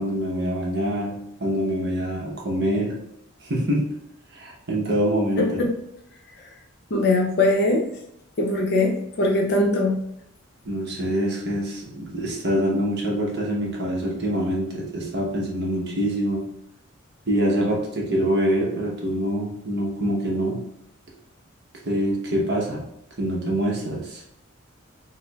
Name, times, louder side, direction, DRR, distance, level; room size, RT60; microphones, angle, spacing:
voice 1, 0.0-3.0 3.4-3.9 4.3-5.6 10.6-16.5 17.3-20.6 21.9-22.8 23.2-24.2, equal, 50° right, -1 dB, 0.8 m, -25 dB
voice 2, 5.4-5.7 6.9-7.9 8.4-10.0, left 2 dB, 50° left, 1 dB, 0.6 m, -21 dB
4.3 x 2.1 x 2.2 m, 0.78 s
head